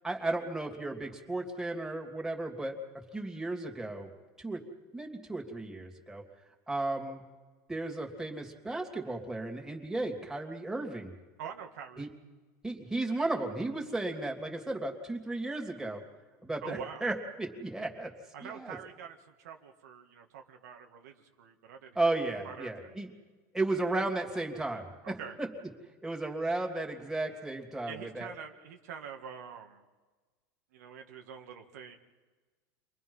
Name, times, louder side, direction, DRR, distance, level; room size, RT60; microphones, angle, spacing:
voice 1, 0.0-2.8 3.1-4.1 4.4-4.6 4.9-6.2 6.7-7.2 7.7-11.1 12.0-12.1 12.6-16.0 16.4-18.1 18.4-18.8 21.9-23.1 23.5-25.5 26.0-28.3, right 2 dB, 5° right, 1 dB, 2.9 m, -34 dB
voice 2, 11.4-12.1 16.6-17.1 18.3-22.0 22.4-23.0 25.0-25.4 27.9-29.8 30.7-32.0, right 7 dB, 90° right, 3 dB, 2.1 m, -45 dB
30.0 x 23.0 x 5.7 m, 1.3 s
supercardioid pair, 125°, 9 cm